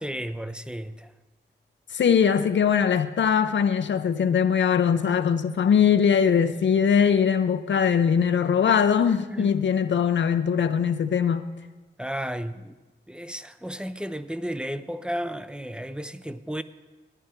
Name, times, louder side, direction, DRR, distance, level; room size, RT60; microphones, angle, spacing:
voice 1, 0.0-1.1 9.3-9.5 12.0-12.7 13.1-16.6, equal, 5° right, 0.4 m, -33 dB
voice 2, 1.9-11.5, left 7 dB, 75° left, 0.5 m, -21 dB
12.0 x 10.0 x 4.3 m
wide cardioid pair, 80°, 19 cm